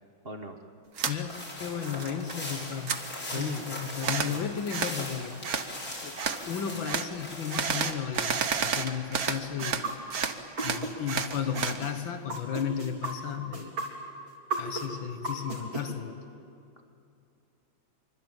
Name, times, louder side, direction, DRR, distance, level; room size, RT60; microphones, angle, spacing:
voice 1, 0.2-0.6 3.2-3.7 4.0-4.5 16.8-16.9, right 3 dB, 30° right, 5 dB, 1.6 m, -41 dB
sound 1, 1.0-1.2 1.6-2.3 2.6-3.0 4.0-4.3 4.7-5.0 5.4-5.7 6.2-6.4 6.9-7.1 7.5-9.8 10.1-11.8, right 6 dB, 50° right, 1.7 m, -30 dB
voice 2, 1.1-3.0 3.3-9.9 10.6-13.8 14.6-16.2, left 8 dB, 80° left, 8 dB, 2.1 m, -34 dB
sound 2, 1.3-7.6, left 1 dB, 45° left, 5.3 m, -40 dB
sound 3, 9.6-10.9 11.3-15.8, right 3 dB, 75° right, 4.7 m, -34 dB
25.5 x 24.5 x 9.1 m, 2.6 s
omnidirectional pair, 2.1 m